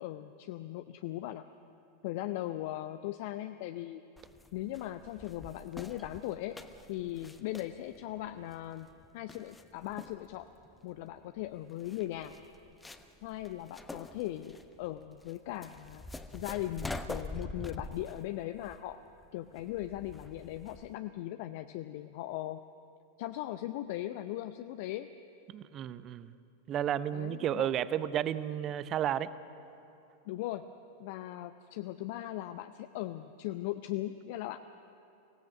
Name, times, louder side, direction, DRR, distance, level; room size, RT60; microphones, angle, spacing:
voice 1, 0.0-1.5 2.0-4.0 4.5-6.6 6.9-10.5 10.8-12.3 13.2-16.0 16.3-19.0 19.3-22.6 23.2-25.1 27.1-27.7 30.3-30.7 31.0-34.6, left 14 dB, 50° left, 10 dB, 0.6 m, -39 dB
sound 1, 4.2-20.9, left 2 dB, 10° left, 1.0 m, -46 dB
voice 2, 25.5-26.3 26.7-29.3, right 10 dB, 30° right, 16 dB, 0.8 m, -32 dB
25.0 x 17.0 x 7.4 m, 2.9 s
figure-of-eight pair, 90°, 0 cm